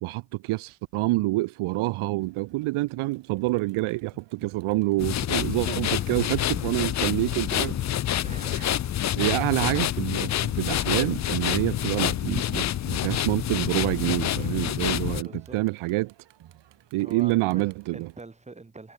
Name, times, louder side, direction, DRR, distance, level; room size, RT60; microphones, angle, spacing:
voice 1, 0.0-7.8 8.5-8.7 9.2-16.1 16.9-18.1, right 20 dB, 75° right, 0.7 m, -27 dB
Crowd, 2.2-18.2, right 12 dB, 55° right, 2.7 m, -55 dB
sound 1, 4.1-4.5 5.1-5.5 6.0-6.5 7.0-7.4 8.0-8.4 9.0-9.4 10.0-10.3 11.0-11.4 12.0-12.4 13.1-13.4 14.0-14.4 15.0-15.4, left 14 dB, 65° left, 2.2 m, -40 dB
sound 2, 5.0-15.2, left 12 dB, 35° left, 0.5 m, -27 dB
voice 2, 6.1-6.7 8.2-8.9 15.2-15.6 17.0-18.9, right 3 dB, 15° right, 2.7 m, -44 dB
cardioid pair, 145°, 50 cm